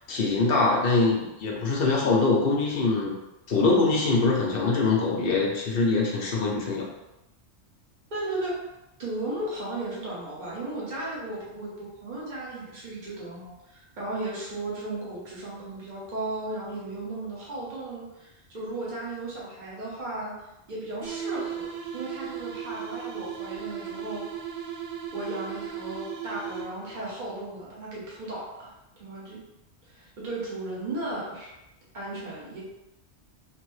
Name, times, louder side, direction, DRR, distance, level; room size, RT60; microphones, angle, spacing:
voice 1, 0.1-3.1 3.5-6.9, left 3 dB, 60° left, -1 dB, 0.8 m, -23 dB
voice 2, 8.1-8.6 9.0-20.3 20.7-24.2 25.1-28.7 29.0-29.4 29.9-31.5 31.9-32.6, right 2 dB, 45° right, -6 dB, 1.1 m, -35 dB
sound 1, 21.0-27.0, right 8 dB, 80° right, 1.0 m, -36 dB
3.1 x 2.1 x 3.1 m, 0.94 s
omnidirectional pair, 1.1 m